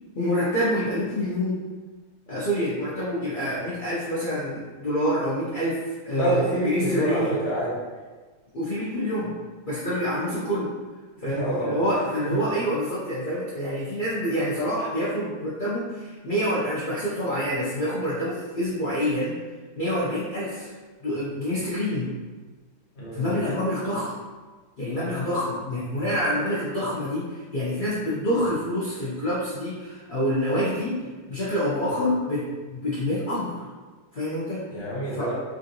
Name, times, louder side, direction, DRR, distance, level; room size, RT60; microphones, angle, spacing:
voice 1, 0.1-1.6 2.3-7.3 8.5-9.3 9.7-10.7 11.2-19.4 19.8-20.7 21.0-22.1 23.1-24.1 24.8-31.0 31.3-33.7 34.1-34.6 35.1-35.3, equal, 80° left, -9 dB, 0.4 m, -27 dB
voice 2, 6.1-7.7 11.3-11.8 23.0-23.2 34.7-35.3, right 1 dB, 45° left, -7 dB, 1.0 m, -27 dB
3.4 x 2.5 x 2.6 m, 1.4 s
omnidirectional pair, 1.7 m